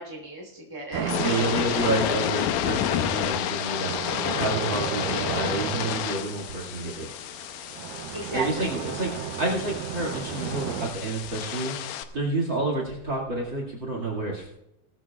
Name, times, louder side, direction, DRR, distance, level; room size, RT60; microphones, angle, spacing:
voice 1, 0.0-2.1 4.0-4.6 8.1-8.7, right 2 dB, 10° left, -1 dB, 2.5 m, -35 dB
sound 1, 0.9-12.0, left 11 dB, 85° left, 2.3 m, -30 dB
sound 2, 0.9-10.9, right 11 dB, 85° right, 2.1 m, -36 dB
voice 2, 1.2-7.1 8.0-11.7 12.1-14.5, right 2 dB, 40° right, 0 dB, 2.5 m, -29 dB
19.0 x 13.5 x 2.4 m, 0.83 s
omnidirectional pair, 3.7 m